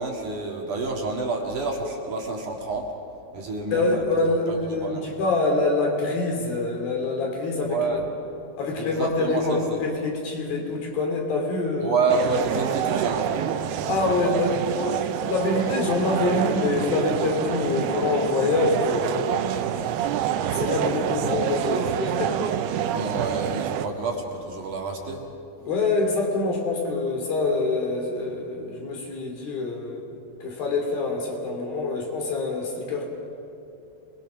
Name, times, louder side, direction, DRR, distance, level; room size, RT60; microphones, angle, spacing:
voice 1, 0.0-2.9 3.3-4.0 4.5-5.0 7.7-8.0 8.8-9.6 11.8-14.3 22.9-25.2, right 3 dB, 55° right, 0 dB, 3.1 m, -29 dB
voice 2, 3.7-7.8 8.6-11.9 13.9-19.9 20.5-22.4 25.6-30.1 30.4-33.1, left 3 dB, 65° left, 1 dB, 4.7 m, -25 dB
sound 1, 12.1-23.9, right 10 dB, 85° right, 2.8 m, -27 dB
26.5 x 21.0 x 6.3 m, 2.7 s
omnidirectional pair, 4.6 m